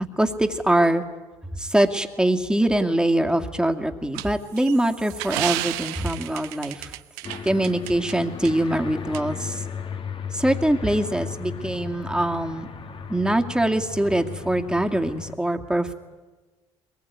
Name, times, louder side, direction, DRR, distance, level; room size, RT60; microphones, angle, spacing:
voice 1, 0.2-1.0 1.6-6.9 7.4-9.6 10.3-12.7 13.1-15.9, right 1 dB, 5° right, 5 dB, 2.4 m, -23 dB
sound 1, 4.1-8.1 8.5-8.6 9.1-9.2, right 17 dB, 85° right, 0.9 m, -32 dB
Aircraft, 7.2-15.3, left 6 dB, 40° left, 2.0 m, -35 dB
22.5 x 20.5 x 9.7 m, 1.3 s
supercardioid pair, 65°, 13 cm